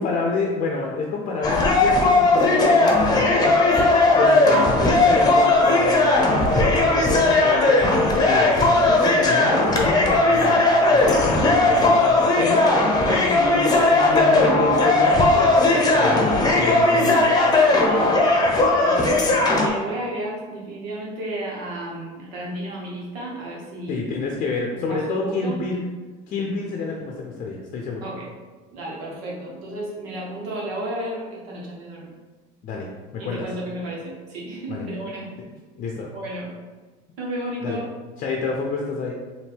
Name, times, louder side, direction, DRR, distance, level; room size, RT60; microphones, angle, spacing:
voice 1, 0.0-3.6 4.1-6.3 6.7-12.7 13.3-17.3 23.9-25.8 26.3-28.1 32.6-33.5 34.7-34.9 35.8-36.1 37.6-37.8 38.2-39.2, left 3 dB, 50° left, 0 dB, 0.6 m, -28 dB
sound 1, 1.4-19.7, left 2 dB, 25° left, 0.8 m, -17 dB
voice 2, 13.0-13.3 17.7-18.5 18.7-24.0 24.7-25.6 28.0-28.3 28.7-32.1 33.2-35.3 36.1-36.5 37.2-37.9, right 1 dB, 80° right, -4 dB, 1.3 m, -33 dB
4.3 x 2.7 x 3.5 m, 1.3 s
supercardioid pair, 105°, 17 cm